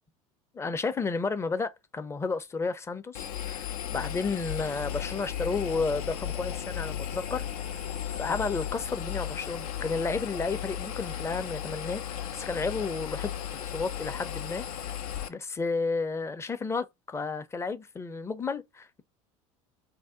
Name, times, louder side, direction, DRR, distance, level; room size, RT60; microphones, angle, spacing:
voice 1, 0.5-7.4 7.7-7.9 8.2-12.0 12.3-14.6 15.3-19.0, left 4 dB, 15° left, 0.4 m, -32 dB
Engine, 3.1-15.3, left 9 dB, 80° left, 0.4 m, -35 dB
2.7 x 2.0 x 3.5 m
hypercardioid pair, 75°, 18 cm